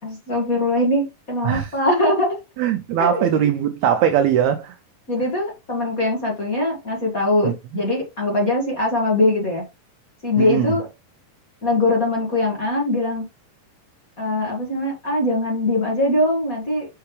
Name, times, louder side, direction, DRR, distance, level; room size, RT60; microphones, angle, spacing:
voice 1, 0.0-2.4 3.0-3.2 5.1-9.6 10.2-10.9 11.6-13.3 14.2-16.9, left 1 dB, 30° left, 1.8 m, -21 dB
voice 2, 2.6-4.7 7.4-7.5 10.4-10.7, right 9 dB, 80° right, 1.6 m, -20 dB
5.7 x 5.7 x 3.2 m
omnidirectional pair, 3.8 m